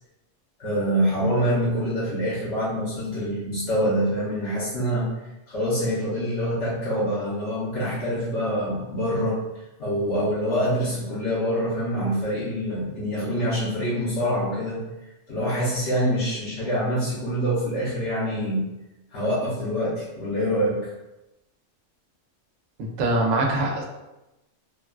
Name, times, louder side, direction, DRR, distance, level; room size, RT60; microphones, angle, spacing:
voice 1, 0.6-5.1 5.5-9.4 9.8-14.8 15.3-18.6 19.1-20.8, equal, 65° left, -9 dB, 1.2 m, -25 dB
voice 2, 22.8-23.8, right 2 dB, 85° right, 1 dB, 1.0 m, -23 dB
3.4 x 2.3 x 2.3 m, 0.98 s
omnidirectional pair, 1.3 m